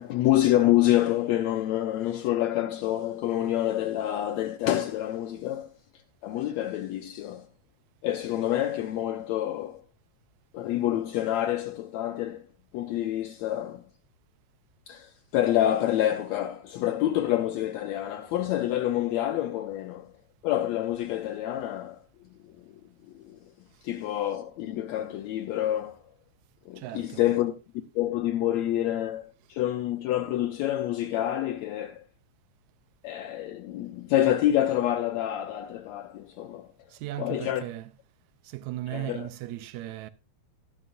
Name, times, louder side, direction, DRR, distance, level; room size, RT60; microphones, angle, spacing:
voice 1, 0.0-5.7 6.2-7.5 8.0-9.8 10.5-12.5 12.7-13.9 14.9-20.1 20.4-22.0 22.4-22.7 23.2-23.5 23.8-26.0 26.7-27.5 28.0-32.0 33.0-36.7 37.2-37.6 38.9-39.3, left 13 dB, 75° left, 1.9 m, -27 dB
voice 2, 26.8-27.2 36.9-37.9 38.4-40.1, right 15 dB, 80° right, 2.0 m, -37 dB
12.5 x 11.0 x 2.5 m
omnidirectional pair, 3.3 m